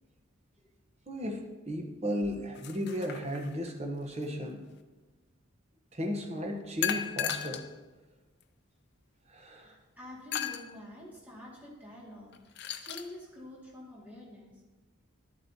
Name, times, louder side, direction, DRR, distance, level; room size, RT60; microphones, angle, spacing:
voice 1, 1.1-1.4 1.7-4.6 5.9-7.6 9.3-9.7, equal, 30° right, 3 dB, 0.9 m, -35 dB
sound 1, 2.5-3.7 6.8-7.7 8.4-8.5 10.3-10.7 12.3-13.1, left 9 dB, 50° left, 0.5 m, -35 dB
voice 2, 9.6-12.3 12.8-14.5, left 1 dB, 10° right, -5 dB, 2.0 m, -47 dB
12.0 x 7.9 x 2.7 m, 1.2 s
head